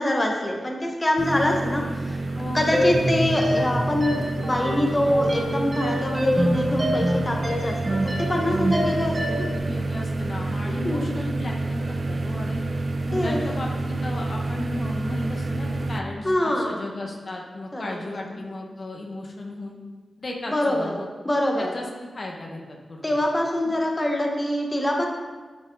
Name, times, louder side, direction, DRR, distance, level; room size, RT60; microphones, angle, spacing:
voice 1, 0.0-2.2 2.5-9.5 10.8-11.1 13.1-13.4 16.2-16.9 17.7-18.4 20.5-21.0 21.2-21.7 23.0-25.1, left 1 dB, 25° left, 1 dB, 1.2 m, -25 dB
sound 1, 1.2-16.0, right 2 dB, 50° right, 0.6 m, -29 dB
voice 2, 2.3-2.9 9.6-12.6 13.1-19.8 20.2-21.1 21.6-21.9 22.1-23.2, left 1 dB, 55° left, 0 dB, 1.3 m, -35 dB
sound 2, 2.7-9.6, equal, 35° right, 2.2 m, -26 dB
9.5 x 5.1 x 4.0 m, 1.4 s
cardioid pair, 45°, 0 cm